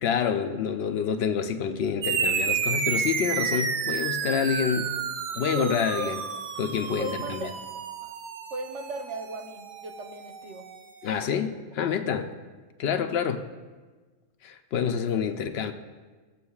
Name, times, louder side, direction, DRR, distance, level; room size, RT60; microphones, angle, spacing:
voice 1, 0.0-4.9 5.3-6.2 6.6-7.5 11.0-12.3 12.8-13.5 14.4-15.7, left 7 dB, 70° left, 8 dB, 0.8 m, -27 dB
sound 1, 2.0-10.9, right 6 dB, 55° right, 0.6 m, -31 dB
voice 2, 5.6-6.1 7.0-7.6 8.0-8.1 8.5-10.6, right 2 dB, 90° right, 3 dB, 1.2 m, -37 dB
14.5 x 7.6 x 2.3 m, 1.4 s
omnidirectional pair, 1.2 m